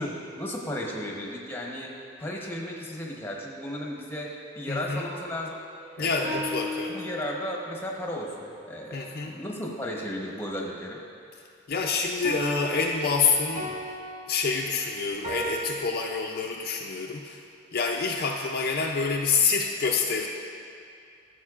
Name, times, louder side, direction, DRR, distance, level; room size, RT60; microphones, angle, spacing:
voice 1, 0.0-5.6 6.0-6.5 6.9-11.0, equal, 10° left, -1 dB, 0.9 m, -35 dB
voice 2, 4.7-5.1 6.0-7.0 8.9-9.3 11.7-13.7 14.3-17.4 17.7-20.3, left 5 dB, 50° left, 0 dB, 0.5 m, -27 dB
sound 1, 5.8-7.7 12.2-15.8, equal, 35° right, 0.8 m, -36 dB
14.5 x 7.3 x 2.4 m, 2.5 s
head